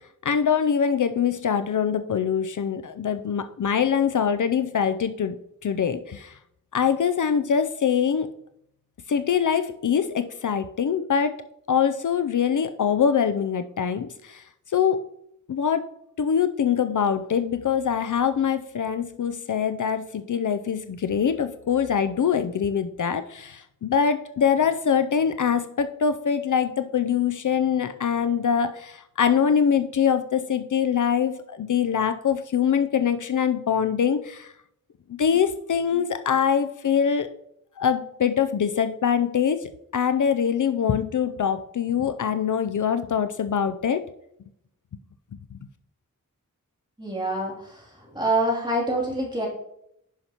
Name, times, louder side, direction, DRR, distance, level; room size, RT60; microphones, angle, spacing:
voice 1, 0.2-5.3 5.6-6.4 6.7-8.3 9.1-11.4 11.7-14.4 14.7-15.0 15.5-15.9 16.2-34.5 35.2-37.3 37.8-44.0, left 7 dB, 65° left, 10 dB, 0.4 m, -23 dB
voice 2, 47.0-47.8 48.1-49.5, right 1 dB, 15° right, -4 dB, 2.8 m, -26 dB
10.5 x 5.7 x 2.9 m, 0.76 s
wide cardioid pair, 70°, 33 cm